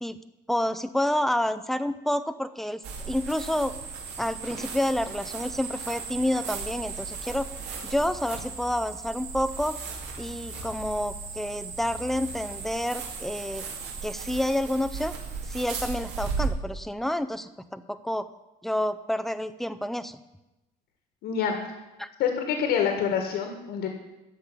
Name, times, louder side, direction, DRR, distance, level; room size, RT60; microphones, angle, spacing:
voice 1, 0.5-3.7 4.2-7.5 7.8-9.8 10.2-13.6 14.0-15.1 15.5-18.3 18.6-20.2 22.0-22.1, left 1 dB, ahead, 12 dB, 0.4 m, -29 dB
sound 1, 2.8-16.5, right 5 dB, 75° right, 2.6 m, -36 dB
voice 2, 21.2-21.6 22.2-23.9, left 7 dB, 75° left, 4 dB, 1.8 m, -26 dB
13.5 x 5.3 x 8.5 m, 0.98 s
cardioid pair, 160°, 18 cm